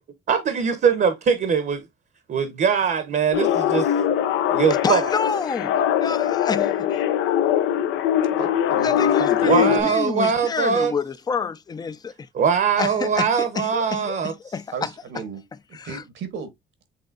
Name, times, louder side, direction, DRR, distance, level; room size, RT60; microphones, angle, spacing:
voice 1, 0.3-1.8 2.3-3.9 4.5-5.1 9.4-10.9 12.3-14.3, right 6 dB, 50° right, 0.8 m, -21 dB
sound 1, 3.3-9.8, left 10 dB, 85° left, 0.6 m, -21 dB
voice 2, 4.8-7.0 8.8-12.3 12.8-14.9 15.8-16.0, left 5 dB, 20° left, 0.4 m, -28 dB
voice 3, 8.4-10.0 14.7-15.4 15.7-16.5, right 5 dB, 80° right, 1.3 m, -35 dB
7.6 x 2.9 x 2.5 m
cardioid pair, 90°, 20 cm